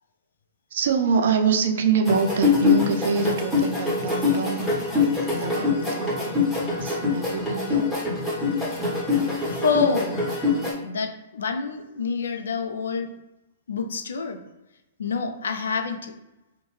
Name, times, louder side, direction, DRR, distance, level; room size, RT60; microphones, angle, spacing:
voice 1, 0.7-4.7 5.3-6.3 6.6-7.8, right 5 dB, 65° right, 5 dB, 0.4 m, -25 dB
sound 1, 2.1-10.7, left 4 dB, 5° left, 1.3 m, -24 dB
voice 2, 9.5-10.2 10.8-13.1 13.7-14.4 15.0-16.1, left 5 dB, 75° left, 6 dB, 0.4 m, -27 dB
2.7 x 2.1 x 3.2 m, 1.0 s
hypercardioid pair, 120°, 0 cm